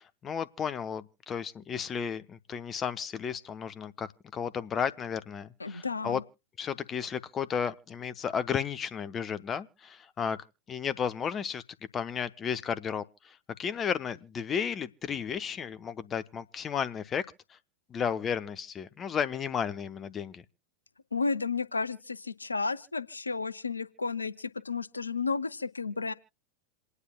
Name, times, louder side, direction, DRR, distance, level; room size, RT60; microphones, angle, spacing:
voice 1, 0.0-6.2 6.6-10.4 10.7-11.6 11.9-17.3 17.9-20.4, left 7 dB, 25° left, 0.6 m, -33 dB
voice 2, 5.6-6.2 21.1-26.1, left 4 dB, 80° left, 0.5 m, -32 dB
27.5 x 9.7 x 2.3 m
figure-of-eight pair, 90°, 0 cm